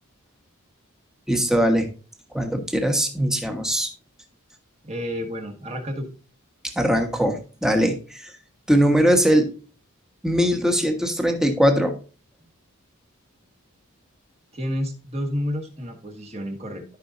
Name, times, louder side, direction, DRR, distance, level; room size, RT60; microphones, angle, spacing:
voice 1, 1.3-1.9 2.3-3.9 6.8-8.3 8.7-9.5 10.2-11.9, equal, ahead, 4 dB, 1.3 m, -20 dB
voice 2, 4.8-6.1 14.5-16.8, equal, 30° right, 3 dB, 1.7 m, -30 dB
13.5 x 5.5 x 2.6 m, 0.36 s
head